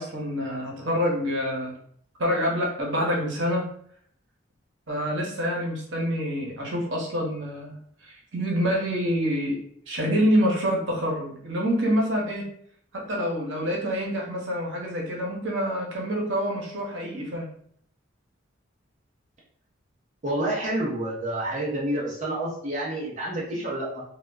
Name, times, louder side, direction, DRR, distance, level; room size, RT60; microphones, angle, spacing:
voice 1, 0.0-1.7 2.2-3.7 4.9-9.6 9.9-12.4 12.9-17.4, equal, 70° right, -2 dB, 0.8 m, -26 dB
voice 2, 20.2-24.0, right 1 dB, 35° right, -6 dB, 0.5 m, -29 dB
2.2 x 2.1 x 3.3 m, 0.64 s
head